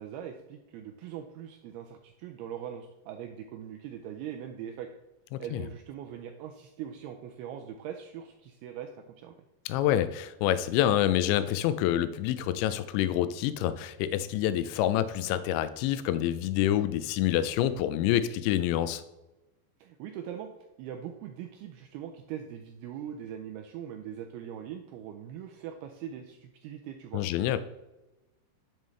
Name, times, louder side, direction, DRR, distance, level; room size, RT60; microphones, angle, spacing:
voice 1, 0.0-4.9 5.4-9.4 19.8-20.5 20.8-27.2, right 9 dB, 80° right, 4 dB, 2.3 m, -41 dB
voice 2, 5.3-5.6 9.7-19.0 27.1-27.6, left 12 dB, 90° left, 12 dB, 2.9 m, -27 dB
10.5 x 7.3 x 3.2 m, 1.0 s
omnidirectional pair, 5.1 m